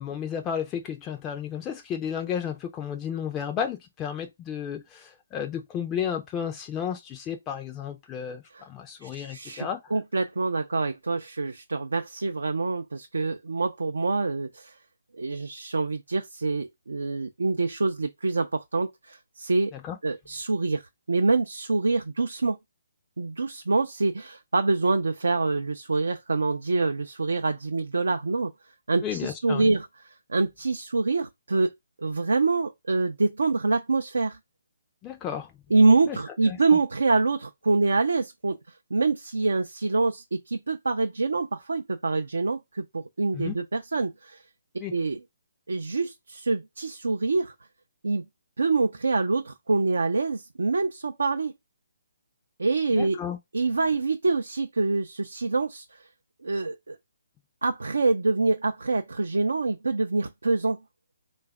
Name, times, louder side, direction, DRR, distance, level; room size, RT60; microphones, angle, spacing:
voice 1, 0.0-9.9 19.7-20.0 29.0-29.7 35.0-35.5 36.1-36.2 36.5-36.6 43.3-43.6 44.8-44.9 52.9-53.4, left 8 dB, 20° left, 0.4 m, -33 dB
voice 2, 9.0-14.7 15.2-19.7 20.0-20.8 21.1-22.6 23.2-28.5 28.9-31.7 32.0-34.4 35.7-38.6 38.9-44.4 44.9-45.2 45.7-47.5 48.0-48.2 48.6-51.5 52.6-53.2 53.5-56.0 56.4-57.0 57.6-60.8, right 3 dB, 75° right, 0.4 m, -26 dB
3.3 x 2.3 x 3.4 m
figure-of-eight pair, 140°, 0 cm